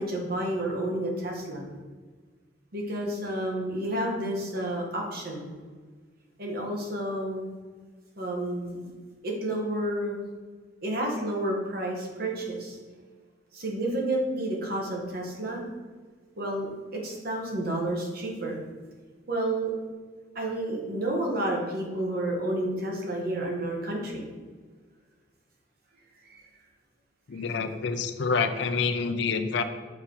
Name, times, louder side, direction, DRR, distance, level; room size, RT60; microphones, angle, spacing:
voice 1, 0.0-1.6 2.7-5.5 6.4-7.5 8.2-8.9 9.2-10.2 10.8-12.8 13.5-15.6 16.4-18.5 19.3-19.7 20.3-24.1 26.3-26.4, right 1 dB, 55° right, 0 dB, 1.2 m, -30 dB
voice 2, 27.3-29.6, left 5 dB, 65° left, 8 dB, 0.5 m, -27 dB
5.6 x 4.4 x 3.9 m, 1.5 s
head